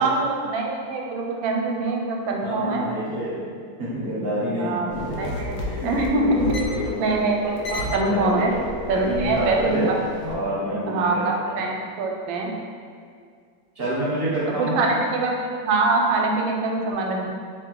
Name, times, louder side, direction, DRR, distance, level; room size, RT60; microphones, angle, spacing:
voice 1, 0.0-2.8 4.5-6.5 6.8-8.5 8.9-9.9 10.9-12.5 14.6-17.3, right 3 dB, 85° right, 0 dB, 1.3 m, -24 dB
voice 2, 2.4-3.5 3.8-7.0 8.1-8.4 8.9-9.9 10.2-11.6 13.8-14.8, right 1 dB, 50° right, -8 dB, 0.7 m, -28 dB
sound 1, 4.9-10.3, left 1 dB, 70° left, 0.8 m, -32 dB
3.4 x 3.4 x 3.7 m, 2.1 s
omnidirectional pair, 2.1 m